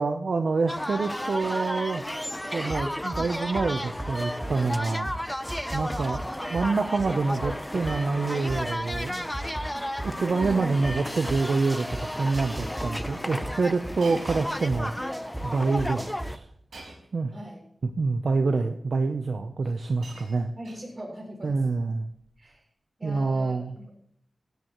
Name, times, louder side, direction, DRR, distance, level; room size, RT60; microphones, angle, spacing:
voice 1, 0.0-5.1 5.7-9.5 9.7-16.5 17.1-17.3 18.0-20.5 21.4-22.1 23.0-23.8, right 4 dB, 70° right, 6 dB, 0.8 m, -27 dB
sound 1, 0.7-16.4, equal, 10° left, 0.6 m, -33 dB
sound 2, 2.7-5.1 5.5-8.6 8.9-12.0 12.3-15.4 15.8-16.3, right 1 dB, 20° right, 4.5 m, -36 dB
Shatter, 7.7-8.1 8.5-8.9 9.3-9.5 9.8-9.9 10.8-11.0 11.3-11.6 12.3-12.4 14.0-15.1 16.7-17.2 18.2-18.3 19.4-19.5 19.7-21.2 22.2-22.5, right 2 dB, 90° right, 5.5 m, -48 dB
voice 2, 10.3-10.9 17.3-17.6 20.6-21.6 22.4-22.6 23.0-23.9, right 1 dB, 40° right, 0 dB, 7.0 m, -40 dB
16.5 x 13.5 x 3.1 m, 0.68 s
cardioid pair, 55°, 0 cm